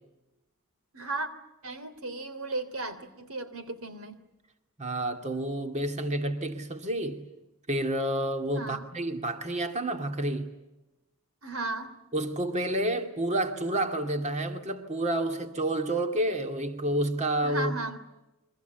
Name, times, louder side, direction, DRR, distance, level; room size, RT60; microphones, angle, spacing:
voice 1, 0.9-1.3 1.6-4.2 8.5-8.9 11.4-12.0 17.4-18.0, right 2 dB, 80° right, 3.1 m, -35 dB
voice 2, 4.8-7.2 7.7-10.5 12.1-17.7, right 1 dB, 35° right, 2.3 m, -29 dB
29.0 x 24.5 x 8.1 m
head